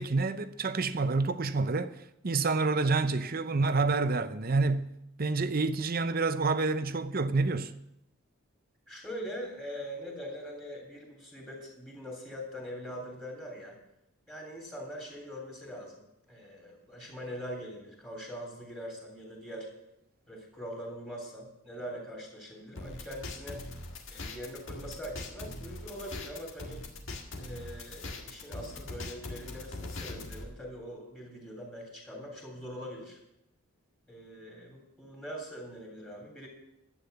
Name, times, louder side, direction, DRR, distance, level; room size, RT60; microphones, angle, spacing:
voice 1, 0.0-1.9 2.2-4.9 5.2-7.7, right 3 dB, 45° right, 0.7 m, -28 dB
voice 2, 8.9-13.8 14.3-16.0 16.3-19.7 20.3-23.6 24.1-26.8 27.4-33.2 34.1-36.5, equal, 10° left, 3.1 m, -42 dB
sound 1, 22.8-30.4, left 2 dB, 60° left, 1.8 m, -41 dB
11.5 x 9.0 x 6.8 m
head